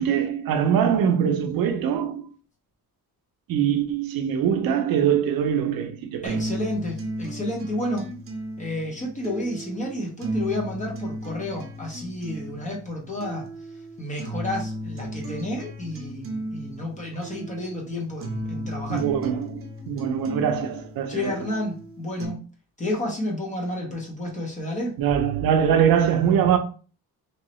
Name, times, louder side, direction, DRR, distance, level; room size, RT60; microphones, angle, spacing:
voice 1, 0.0-2.2 3.5-6.5 18.9-21.3 25.0-26.6, right 8 dB, 75° right, 0.5 m, -23 dB
voice 2, 6.2-8.1 8.6-13.5 14.0-19.0 21.1-22.4 22.8-24.9, left 1 dB, 20° left, 0.9 m, -31 dB
sound 1, 6.3-22.3, equal, 40° right, 0.7 m, -35 dB
3.0 x 2.7 x 3.0 m
cardioid pair, 150°, 35 cm